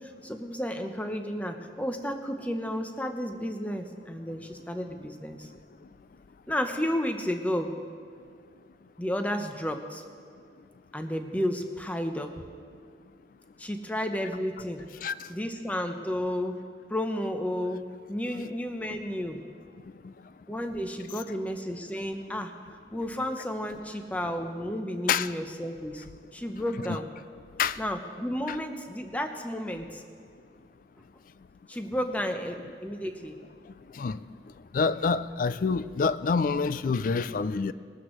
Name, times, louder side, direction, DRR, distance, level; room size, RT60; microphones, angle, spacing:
voice 1, 0.0-5.5 6.5-7.8 9.0-10.0 10.9-12.4 13.6-14.9 15.3-16.6 16.9-19.4 20.5-26.0 26.3-27.1 27.8-30.0 31.7-33.4, equal, 10° left, 6 dB, 0.7 m, -32 dB
voice 2, 34.7-37.7, left 5 dB, 45° left, 15 dB, 0.3 m, -27 dB
21.0 x 12.5 x 3.2 m, 2.2 s
head